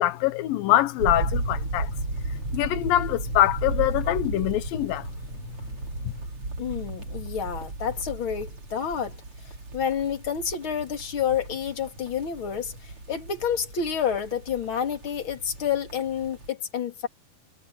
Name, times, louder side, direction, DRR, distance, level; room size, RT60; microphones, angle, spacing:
voice 1, 0.0-1.9 2.5-5.1 6.0-6.1, left 14 dB, 90° left, 2.7 m, -24 dB
sound 1, 1.0-16.5, right 2 dB, 40° right, 4.9 m, -34 dB
voice 2, 6.6-9.2 9.4-17.1, left 8 dB, 40° left, 3.2 m, -29 dB
omnidirectional pair, 4.0 m